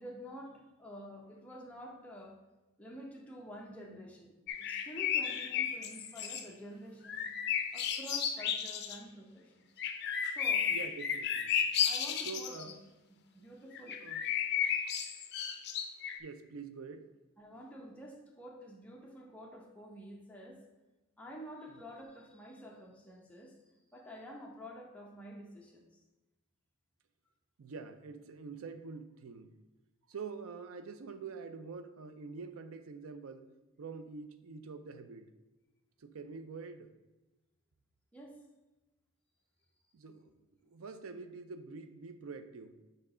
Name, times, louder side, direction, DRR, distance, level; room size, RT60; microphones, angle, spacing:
voice 1, 0.0-2.4 2.8-7.3 7.7-9.7 10.3-10.7 11.8-12.8 13.3-14.0 14.8-15.0 17.4-20.6 21.2-23.6 23.9-25.9 38.1-38.4, equal, 5° left, -1 dB, 0.8 m, -49 dB
sound 1, 4.5-6.4 7.0-9.0 9.8-12.7 13.7-16.2, left 8 dB, 50° left, 0.5 m, -33 dB
voice 2, 10.7-11.5 12.2-12.7 14.0-14.2 16.2-17.1 27.6-29.6 30.1-33.5 33.8-35.3 36.0-36.9 39.9-40.3 40.6-42.8, right 4 dB, 80° right, 9 dB, 0.5 m, -46 dB
6.7 x 3.2 x 4.9 m, 1.1 s
head